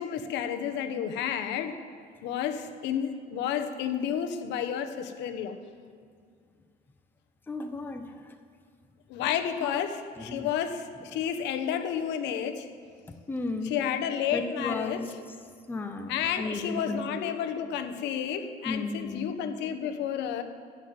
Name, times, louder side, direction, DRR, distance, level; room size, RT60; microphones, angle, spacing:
voice 1, 0.0-1.7 2.2-5.6 9.1-12.7 13.6-15.1 16.1-20.4, left 9 dB, 75° left, 8 dB, 1.1 m, -31 dB
voice 2, 7.5-8.4 9.2-9.3 9.6-9.7 10.2-10.5 11.1-11.2 13.1-13.8 14.3-15.1 15.7-17.3 18.6-19.3, left 3 dB, 10° left, 6 dB, 0.7 m, -35 dB
15.0 x 6.5 x 9.4 m, 2.1 s
cardioid pair, 160°, 18 cm